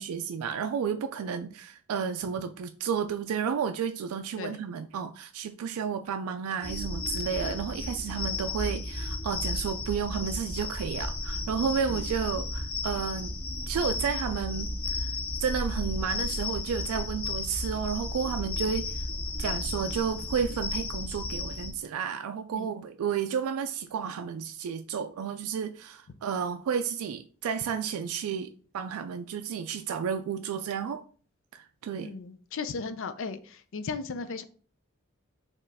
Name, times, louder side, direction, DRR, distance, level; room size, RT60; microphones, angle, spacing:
voice 1, 0.0-13.3 13.7-15.1 15.4-19.1 19.4-31.0 31.5-32.1, right 7 dB, 90° right, 0.3 m, -32 dB
sound 1, 6.6-21.7, left 2 dB, 90° left, 1.2 m, -33 dB
voice 2, 32.0-33.4 33.7-34.4, left 4 dB, 65° left, 0.5 m, -35 dB
4.5 x 3.0 x 3.4 m
head